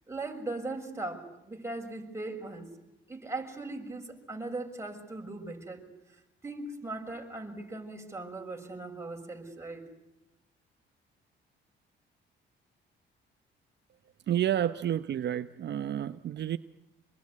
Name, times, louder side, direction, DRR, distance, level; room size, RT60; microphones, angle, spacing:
voice 1, 0.1-2.7 3.1-5.8 6.4-9.8, right 2 dB, 15° right, 2 dB, 6.5 m, -39 dB
voice 2, 14.3-16.6, right 11 dB, 60° right, 11 dB, 0.9 m, -30 dB
27.0 x 21.5 x 9.7 m, 0.92 s
cardioid pair, 90°, 20 cm